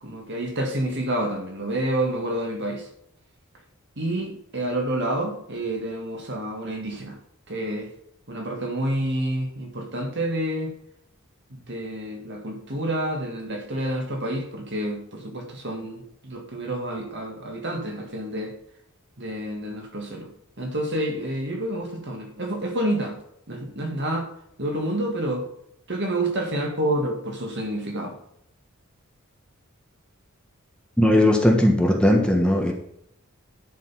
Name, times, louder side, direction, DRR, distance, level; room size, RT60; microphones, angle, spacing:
voice 1, 0.0-2.9 4.0-7.2 7.5-7.9 8.3-10.7 11.5-18.5 19.2-20.3 20.6-23.2 23.5-24.3 24.6-25.4 25.9-28.2, right 1 dB, 55° right, 3 dB, 1.9 m, -28 dB
voice 2, 31.0-32.7, left 1 dB, 5° left, 1 dB, 1.3 m, -18 dB
10.5 x 5.3 x 5.7 m, 0.74 s
head